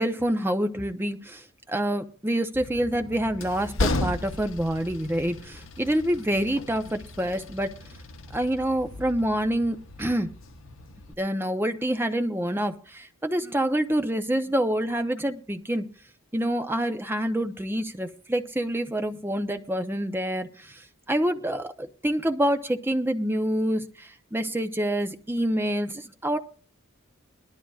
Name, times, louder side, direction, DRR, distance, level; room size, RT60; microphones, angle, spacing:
voice 1, 0.0-7.7 8.3-10.3 11.2-15.9 16.3-26.4, right 1 dB, 10° right, 7 dB, 0.7 m, -27 dB
Train, 2.5-11.1, left 2 dB, 65° left, 1.0 m, -35 dB
21.0 x 12.5 x 2.4 m, 0.40 s
head